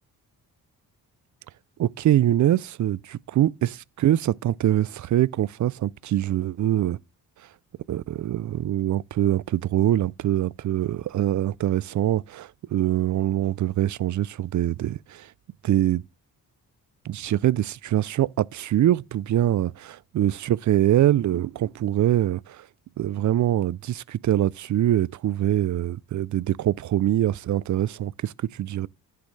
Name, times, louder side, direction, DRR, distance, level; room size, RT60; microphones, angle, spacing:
voice 1, 1.8-7.0 7.9-15.3 15.6-16.0 17.0-22.7 23.0-28.9, right 12 dB, 50° right, 0.4 m, -24 dB
10.5 x 7.7 x 3.2 m
supercardioid pair, 60°, 39 cm